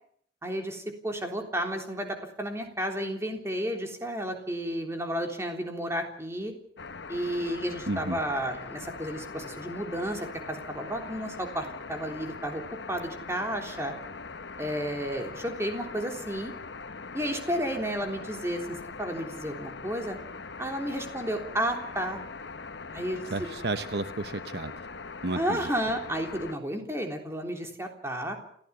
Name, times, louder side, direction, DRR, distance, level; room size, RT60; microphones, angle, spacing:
voice 1, 0.4-6.5 7.1-12.6 12.9-13.9 14.6-16.5 17.1-20.2 20.6-22.2 22.9-23.5 25.3-28.4, equal, 15° right, 3 dB, 3.5 m, -32 dB
sound 1, 6.8-26.5, left 4 dB, 80° left, 1.2 m, -41 dB
voice 2, 7.9-8.2 23.3-24.7 25.2-25.6, right 2 dB, 60° right, 11 dB, 1.0 m, -32 dB
29.0 x 14.5 x 7.1 m, 0.65 s
head